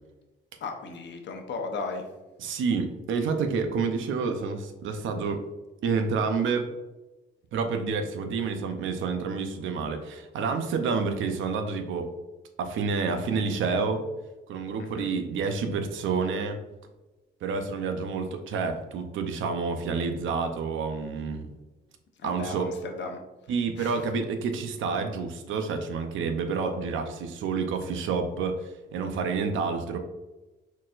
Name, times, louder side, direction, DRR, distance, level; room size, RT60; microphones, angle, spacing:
voice 1, 0.6-2.0 15.0-15.1 22.2-23.2 23.8-24.0, left 3 dB, 65° left, 3 dB, 0.8 m, -35 dB
voice 2, 2.4-5.4 5.8-6.7 7.5-12.1 12.6-14.0 14.5-16.6 17.4-21.5 22.2-22.7 23.5-30.0, right 5 dB, 80° right, 6 dB, 0.6 m, -29 dB
4.2 x 4.1 x 2.5 m, 1.1 s
cardioid pair, 90°, 20 cm